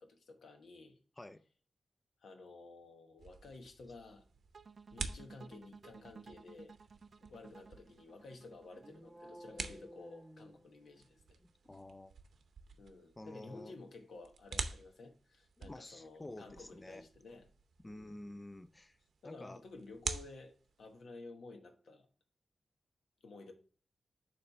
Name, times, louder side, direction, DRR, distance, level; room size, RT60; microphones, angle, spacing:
voice 1, 0.0-1.0 2.2-4.2 4.9-6.7 7.3-11.4 12.8-17.5 17.8-18.2 19.2-22.1 23.2-23.5, left 3 dB, 85° left, 1.1 m, -53 dB
sound 1, 3.2-21.0, right 5 dB, 90° right, 0.6 m, -49 dB
sound 2, 4.5-9.6, right 5 dB, 60° right, 0.3 m, -56 dB
sound 3, 8.7-11.3, equal, 5° right, 0.7 m, -55 dB
voice 2, 11.4-12.1 13.2-13.7 15.6-17.0 17.8-19.0 19.2-19.6, left 1 dB, 20° left, 0.4 m, -50 dB
6.8 x 3.3 x 5.6 m
wide cardioid pair, 100°, 0 cm